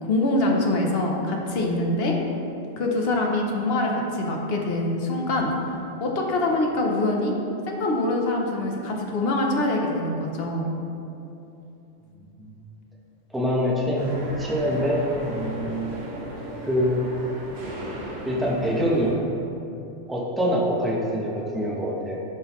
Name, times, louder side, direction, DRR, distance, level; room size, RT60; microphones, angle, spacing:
voice 1, 0.0-2.2 2.8-5.5 6.0-7.3 7.7-10.7, left 2 dB, 55° left, 0 dB, 1.0 m, -24 dB
voice 2, 13.3-14.1 14.4-15.9 16.6-17.1 18.2-19.1 20.1-22.2, equal, ahead, -5 dB, 0.8 m, -25 dB
sound 1, 14.0-19.1, right 1 dB, 80° right, 1.4 m, -36 dB
11.5 x 3.8 x 3.0 m, 2.8 s
omnidirectional pair, 1.3 m